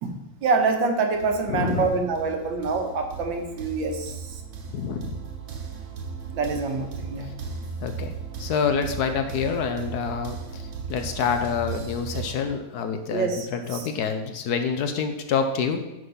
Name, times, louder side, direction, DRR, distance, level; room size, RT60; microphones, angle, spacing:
voice 1, 0.0-4.4 6.3-7.3 13.1-13.9, right 4 dB, 85° right, 4 dB, 1.8 m, -26 dB
sound 1, 1.1-12.3, right 5 dB, 70° right, 1.7 m, -37 dB
voice 2, 1.5-2.0 4.7-5.2 7.8-8.1 8.4-15.8, left 6 dB, 70° left, 7 dB, 1.1 m, -27 dB
9.4 x 3.9 x 5.5 m, 1.0 s
omnidirectional pair, 2.0 m